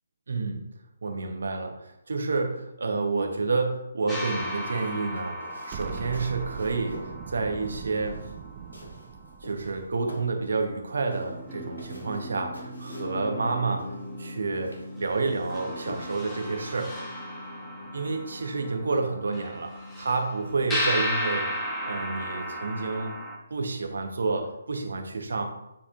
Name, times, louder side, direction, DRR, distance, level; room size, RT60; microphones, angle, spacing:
voice 1, 0.3-0.6 1.0-5.4 5.6-8.3 9.4-13.9 14.2-16.9 17.9-23.2 23.5-25.4, right 3 dB, 60° right, 3 dB, 1.1 m, -29 dB
sound 1, 4.1-8.9 10.4-10.5 10.9-23.4, equal, 10° left, 1.1 m, -35 dB
sound 2, 4.3-15.9, equal, 80° left, 2.1 m, -47 dB
Explosion, 5.7-10.9, right 8 dB, 30° right, 0.3 m, -41 dB
8.9 x 4.2 x 2.6 m, 0.86 s
figure-of-eight pair, 140°, 0 cm